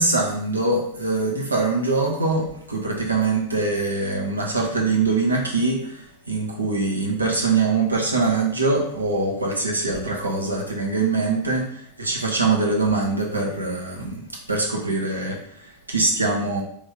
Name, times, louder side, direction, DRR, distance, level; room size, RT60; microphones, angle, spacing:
voice 1, 0.0-14.2 14.5-16.6, right 3 dB, 80° right, -1 dB, 1.0 m, -23 dB
3.2 x 3.0 x 3.8 m, 0.67 s
figure-of-eight pair, 90°, 0 cm